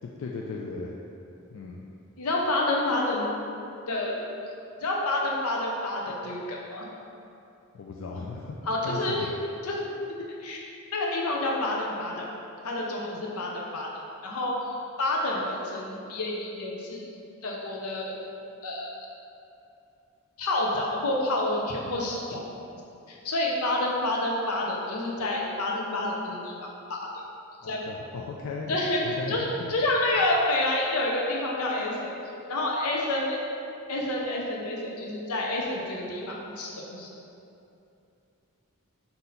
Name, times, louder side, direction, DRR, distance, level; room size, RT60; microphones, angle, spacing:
voice 1, 0.0-1.0 1.5-1.9 7.7-8.6 8.8-9.3 27.6-28.7 29.0-29.7, left 4 dB, 65° left, -2 dB, 0.3 m, -37 dB
voice 2, 2.2-3.3 3.9-4.2 4.8-6.8 8.7-9.3 9.6-9.9 10.4-10.6 10.9-12.2 12.6-13.9 14.2-17.1 17.4-18.2 18.6-18.9 20.4-22.4 23.1-26.5 26.9-27.0 27.6-27.8 28.7-32.1 32.5-33.4 33.9-37.1, left 1 dB, 90° left, -2 dB, 0.7 m, -28 dB
3.9 x 2.7 x 4.1 m, 2.7 s
head